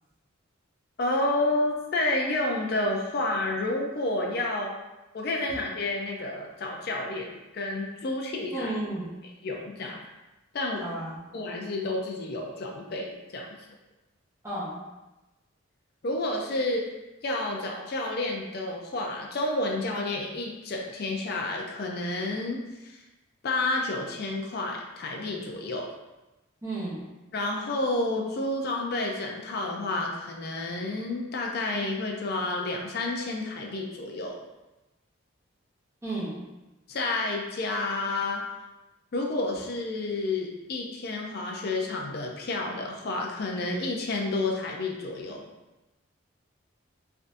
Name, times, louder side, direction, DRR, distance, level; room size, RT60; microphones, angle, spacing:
voice 1, 1.0-4.7 5.1-8.7 9.4-10.0 10.5-10.9 11.3-13.5 16.0-16.9 17.2-22.9 23.4-25.9 27.3-34.4 36.9-38.4 39.1-45.4, left 2 dB, 50° left, 0 dB, 0.4 m, -30 dB
voice 2, 8.5-9.2 10.8-11.2 14.4-14.8 26.6-27.1 36.0-36.4, right 2 dB, 15° right, -9 dB, 0.6 m, -33 dB
3.3 x 2.6 x 2.5 m, 1.0 s
head